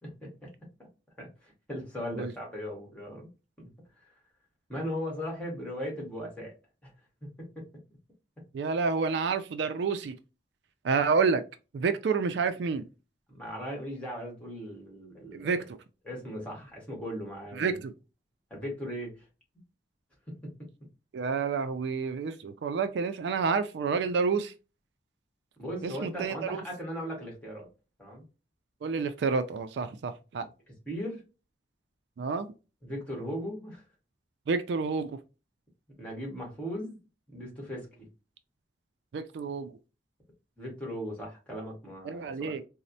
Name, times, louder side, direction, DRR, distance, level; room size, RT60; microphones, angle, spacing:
voice 1, 0.0-0.5 0.8-0.9 1.2-3.3 3.6-3.7 4.0-4.1 4.7-6.5 6.8-6.9 7.4-7.6 13.3-15.6 16.0-17.8 18.5-19.2 20.3-20.4 25.6-27.7 28.0-28.2 30.9-31.2 32.8-33.8 36.0-37.0 37.3-38.1 40.6-42.6, equal, 5° left, 1.3 m, -38 dB
voice 2, 8.5-10.2 10.8-11.4 11.7-12.9 15.3-15.8 17.6-17.9 21.1-24.5 25.8-26.6 28.8-30.5 32.2-32.5 34.5-35.2 39.1-39.8 42.0-42.6, right 5 dB, 75° right, 0.3 m, -29 dB
4.1 x 2.0 x 2.6 m
head